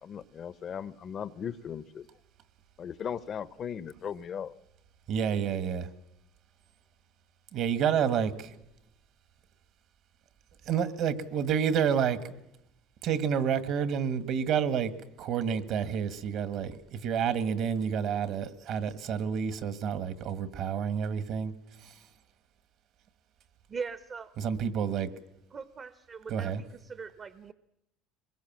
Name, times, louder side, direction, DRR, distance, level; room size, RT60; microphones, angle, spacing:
voice 1, 0.0-2.1 2.8-4.5, left 8 dB, 35° left, 0.8 m, -37 dB
voice 2, 5.1-5.9 7.5-8.5 10.7-12.2 13.0-21.5 24.4-25.1 26.3-26.6, right 7 dB, 55° right, 1.8 m, -29 dB
voice 3, 23.7-24.3 25.5-26.5 26.8-27.5, right 5 dB, 30° right, 0.9 m, -40 dB
24.0 x 21.5 x 7.5 m
cardioid pair, 130°, 0 cm